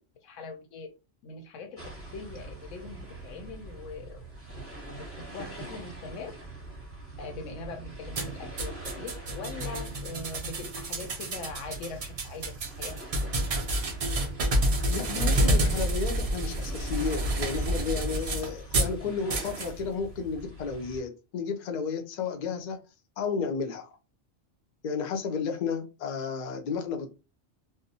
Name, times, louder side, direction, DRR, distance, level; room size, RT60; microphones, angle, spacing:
voice 1, 0.2-0.9 1.2-4.2 4.5-6.3 7.2-12.9 13.2-13.4, left 3 dB, 80° left, 1.0 m, -42 dB
sound 1, 1.8-21.0, right 2 dB, 15° right, 0.8 m, -43 dB
sound 2, 8.1-19.0 19.3-19.7, right 1 dB, 70° right, 0.3 m, -29 dB
voice 2, 14.9-22.8 23.2-23.9 24.8-27.1, left 5 dB, 60° left, 0.4 m, -32 dB
2.4 x 2.0 x 2.6 m
omnidirectional pair, 1.3 m